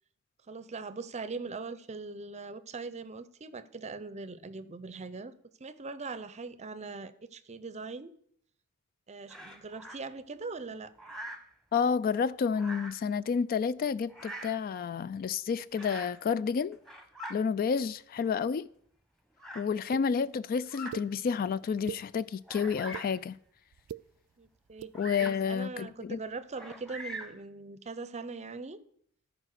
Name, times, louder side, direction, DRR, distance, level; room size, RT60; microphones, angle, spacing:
voice 1, 0.5-5.3 5.6-8.1 9.1-10.9 24.4-24.9 25.4-28.8, right 4 dB, 30° right, 0.6 m, -41 dB
Bird vocalization bird call bird song, 9.3-10.0 11.0-11.5 12.5-13.1 14.1-14.6 15.7-16.2 16.7-17.4 18.2-18.3 19.4-19.7 20.6-21.0 21.6-21.7 22.5-23.2 24.9-25.5 26.5-27.4, equal, ahead, 1.0 m, -43 dB
voice 2, 11.7-16.8 17.3-18.7 19.6-23.4 24.9-26.2, left 6 dB, 40° left, 0.3 m, -30 dB
sound 1, 19.9-20.0 20.9-21.0 21.7-22.0 22.7-23.1 23.7-24.0 24.7-24.9, right 9 dB, 80° right, 0.3 m, -40 dB
13.5 x 5.0 x 6.5 m
head